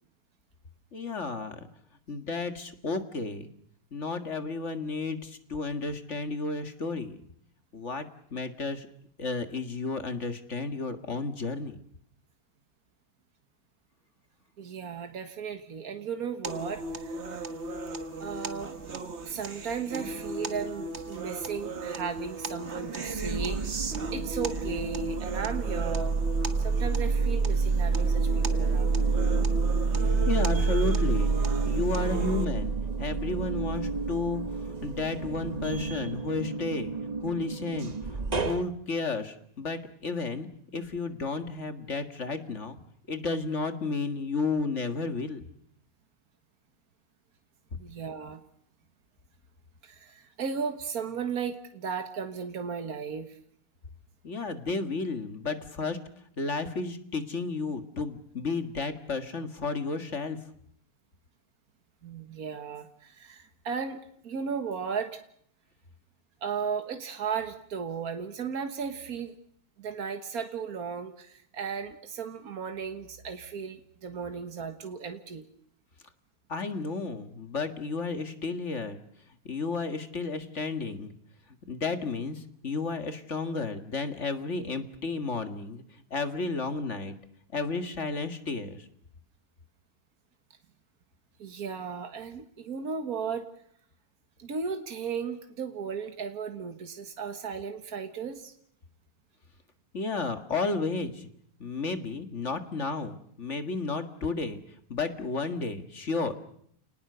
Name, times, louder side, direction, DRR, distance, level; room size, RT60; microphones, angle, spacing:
voice 1, 0.9-1.7 2.1-3.5 3.9-7.2 7.7-8.9 9.2-11.8 30.3-31.3 31.6-36.9 37.2-42.8 43.1-45.4 54.2-56.0 56.4-60.4 76.5-79.0 79.4-81.1 81.7-87.1 87.5-88.9 99.9-101.3 101.6-104.6 104.9-106.3, left 3 dB, 55° left, 8 dB, 2.1 m, -32 dB
voice 2, 14.6-17.5 18.2-18.7 19.3-23.8 24.1-26.2 26.6-29.5 47.8-48.4 49.8-53.4 62.0-65.2 66.4-69.3 69.8-75.5 91.4-93.5 94.4-98.5, right 6 dB, 85° right, 7 dB, 2.0 m, -35 dB
sound 1, 16.4-32.5, right 2 dB, 50° right, 1.8 m, -37 dB
sound 2, 21.5-22.4 22.7-38.6, right 4 dB, 30° right, 1.1 m, -28 dB
29.5 x 19.5 x 6.9 m, 0.67 s
omnidirectional pair, 1.5 m